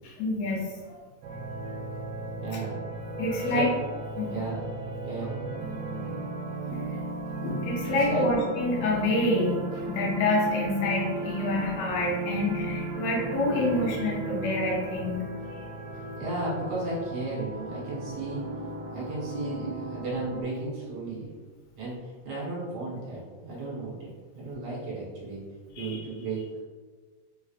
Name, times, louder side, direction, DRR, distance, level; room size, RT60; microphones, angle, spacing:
voice 1, 0.0-0.7 2.5-2.6 3.2-3.7 4.2-4.3 6.7-7.0 7.4-15.3 25.8-26.0, left 2 dB, 75° left, -3 dB, 1.9 m, -27 dB
sound 1, 1.2-20.4, right 2 dB, 85° right, 1.9 m, -36 dB
voice 2, 2.4-2.8 3.4-3.7 4.3-4.7 5.0-5.4 8.1-8.3 16.2-18.4 18.9-21.3 21.8-24.1 24.3-25.4 25.7-26.4, right 2 dB, 65° right, -7 dB, 2.2 m, -34 dB
5.1 x 2.4 x 2.4 m, 1.4 s
omnidirectional pair, 3.4 m